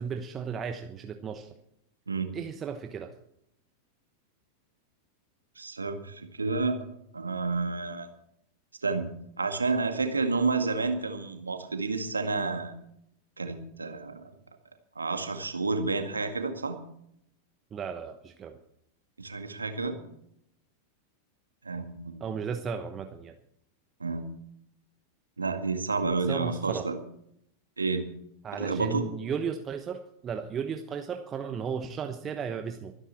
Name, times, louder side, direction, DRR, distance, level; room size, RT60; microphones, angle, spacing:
voice 1, 0.0-1.6 2.3-3.1 17.7-18.6 22.2-23.4 26.2-26.9 28.4-33.0, right 6 dB, 25° right, 7 dB, 1.1 m, -35 dB
voice 2, 5.6-6.8 7.1-8.1 8.8-9.1 9.4-12.7 13.4-14.3 15.0-16.8 19.2-20.0 21.6-22.2 24.0-24.3 25.4-27.0 27.8-28.0 28.6-29.0, right 3 dB, 75° right, 6 dB, 2.0 m, -30 dB
23.5 x 10.5 x 4.3 m, 0.73 s
figure-of-eight pair, 90°, 0 cm